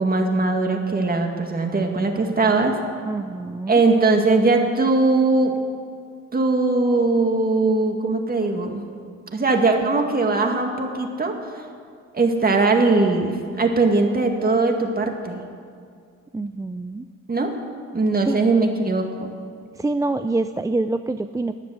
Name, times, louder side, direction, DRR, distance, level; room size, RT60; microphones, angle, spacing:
voice 1, 0.0-2.8 3.7-5.5 6.3-8.8 9.3-11.3 12.1-15.4 17.3-17.5 17.9-19.3, right 3 dB, 30° right, 3 dB, 2.1 m, -20 dB
voice 2, 3.1-3.8 16.3-17.0 18.3-18.4 19.8-21.5, right 2 dB, 10° right, 9 dB, 0.4 m, -26 dB
14.5 x 9.5 x 9.3 m, 2.2 s
cardioid pair, 90°, 30 cm